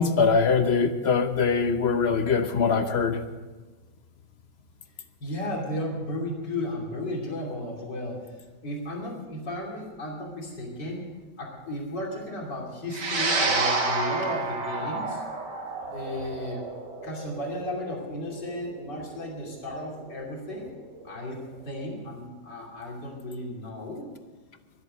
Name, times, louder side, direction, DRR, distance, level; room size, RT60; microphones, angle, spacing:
voice 1, 0.0-3.2, left 5 dB, 50° left, 9 dB, 0.9 m, -22 dB
voice 2, 5.2-8.2 8.6-11.1 11.4-15.2 15.9-16.7 17.0-20.7 21.0-24.0, left 1 dB, 85° left, -1 dB, 3.5 m, -34 dB
sound 1, 12.9-21.5, right 3 dB, 80° right, 2.5 m, -30 dB
22.0 x 8.1 x 6.6 m, 1.3 s
omnidirectional pair, 1.8 m